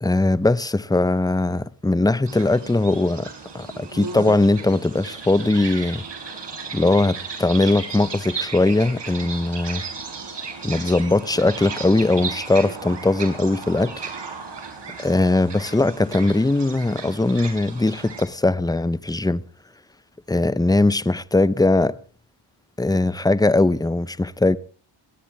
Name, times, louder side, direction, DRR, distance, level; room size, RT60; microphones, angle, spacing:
voice 1, 0.0-3.3 3.5-6.0 6.7-9.8 10.6-14.1 15.0-19.4 20.3-22.0 22.8-24.6, left 2 dB, 10° left, 0.7 m, -20 dB
sound 1, 2.2-18.2, right 5 dB, 60° right, 5.2 m, -35 dB
21.5 x 17.5 x 3.5 m
cardioid pair, 50°, 49 cm